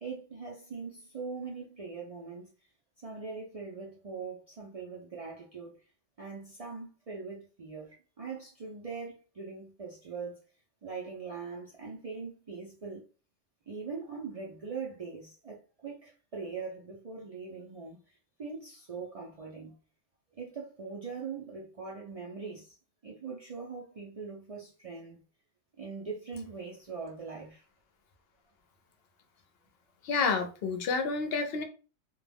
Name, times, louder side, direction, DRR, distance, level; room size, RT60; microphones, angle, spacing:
voice 1, 0.0-2.5 3.0-5.8 6.2-10.4 10.8-13.0 13.7-18.0 18.4-19.8 20.4-22.8 23.0-25.2 25.8-27.6, right 5 dB, 55° right, 0.4 m, -41 dB
voice 2, 30.0-31.6, left 4 dB, 65° left, 0.7 m, -29 dB
2.3 x 2.2 x 3.3 m
omnidirectional pair, 1.3 m